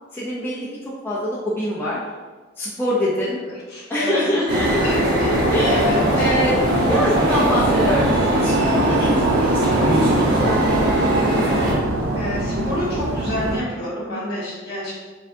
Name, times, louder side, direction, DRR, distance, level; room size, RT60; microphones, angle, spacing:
voice 1, 0.1-0.7 1.0-2.0 2.6-3.4 3.9-5.2 5.5-6.6 6.9-11.3, equal, 10° left, -8 dB, 0.6 m, -25 dB
voice 2, 3.4-4.3 4.8-6.4 12.1-14.9, left 1 dB, 50° left, -5 dB, 1.4 m, -29 dB
sound 1, 4.5-11.7, equal, 55° right, 1.1 m, -21 dB
sound 2, 4.5-13.6, right 2 dB, 80° right, 0.7 m, -23 dB
4.6 x 3.6 x 2.6 m, 1.4 s
head